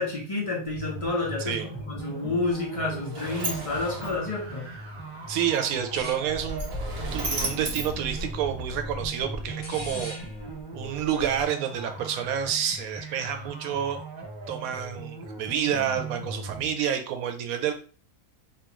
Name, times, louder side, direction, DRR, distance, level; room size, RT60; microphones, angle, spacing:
voice 1, 0.0-4.8, left 3 dB, 50° left, -3 dB, 0.4 m, -30 dB
sound 1, 0.7-16.7, right 2 dB, 25° right, 0.9 m, -39 dB
Sliding door, 2.5-8.9, right 2 dB, 50° right, 0.9 m, -37 dB
voice 2, 5.3-6.6 7.1-10.2 10.7-14.0 14.5-17.7, right 9 dB, 85° right, 7 dB, 1.0 m, -29 dB
sound 2, 6.0-11.4, equal, 80° left, 1.2 m, -38 dB
3.0 x 2.4 x 2.9 m, 0.39 s
omnidirectional pair, 1.4 m